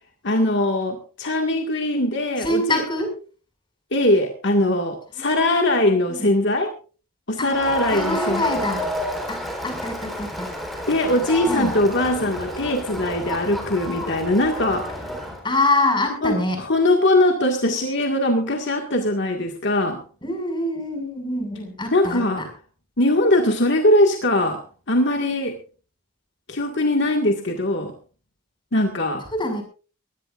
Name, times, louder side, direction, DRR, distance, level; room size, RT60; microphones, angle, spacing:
voice 1, 0.2-2.8 3.9-6.7 7.3-8.4 10.9-15.0 16.2-20.0 21.9-22.4 23.0-25.6 26.5-27.9 28.7-29.2, left 1 dB, 55° left, 3 dB, 2.0 m, -21 dB
voice 2, 2.4-3.1 5.2-5.5 6.1-6.3 7.4-7.6 7.9-8.8 9.3-10.5 11.5-11.8 15.4-16.6 20.2-22.5 29.3-29.6, left 1 dB, 20° left, 4 dB, 6.3 m, -25 dB
Crowd, 7.5-15.4, equal, ahead, 4.0 m, -30 dB
22.0 x 17.5 x 2.6 m, 0.37 s
head